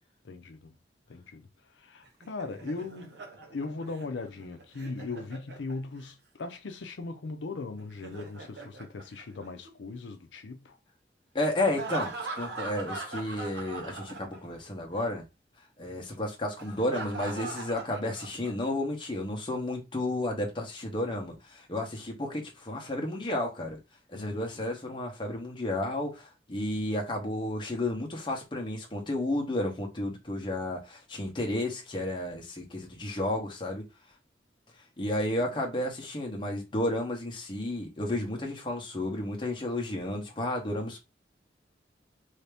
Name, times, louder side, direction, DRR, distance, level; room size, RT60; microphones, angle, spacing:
voice 1, 0.2-0.7 1.1-3.2 3.5-10.8 24.1-24.7, left 3 dB, 85° left, 0.5 m, -39 dB
Laughter, 2.0-6.1 7.8-9.9 11.6-14.7 15.0-15.1 16.6-18.7, right 3 dB, 75° right, 1.0 m, -41 dB
voice 2, 11.3-15.2 15.8-23.8 24.1-33.8 35.0-41.0, left 1 dB, 25° left, 0.9 m, -32 dB
3.3 x 2.8 x 3.4 m
head